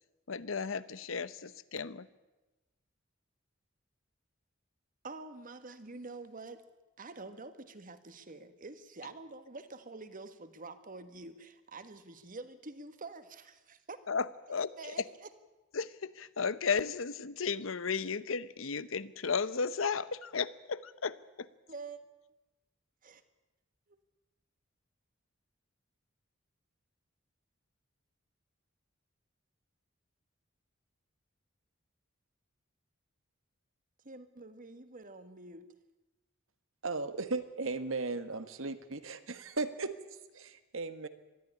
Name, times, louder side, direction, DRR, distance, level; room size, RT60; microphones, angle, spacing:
voice 1, 0.3-2.1 14.1-14.9 15.7-21.5, left 5 dB, 80° left, 16 dB, 0.8 m, -34 dB
voice 2, 5.0-6.6 7.0-14.0 14.8-15.3 21.7-22.0 23.0-23.2 23.9-24.0 34.0-35.7, right 3 dB, 45° right, 10 dB, 1.5 m, -47 dB
voice 3, 36.8-41.1, right 3 dB, 80° right, 10 dB, 1.5 m, -37 dB
21.0 x 14.0 x 10.0 m, 1.1 s
head